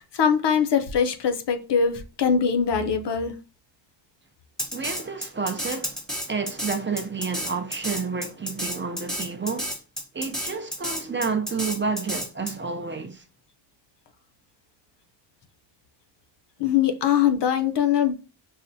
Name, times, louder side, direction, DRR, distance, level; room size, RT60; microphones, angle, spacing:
voice 1, 0.0-3.3 16.6-18.1, left 7 dB, 65° left, 0.6 m, -22 dB
Drum kit, 4.6-12.5, equal, ahead, 0.8 m, -31 dB
voice 2, 4.7-6.0 6.3-9.7 10.1-13.2, right 4 dB, 25° right, 0.4 m, -30 dB
5.6 x 2.0 x 2.6 m
wide cardioid pair, 110°, 46 cm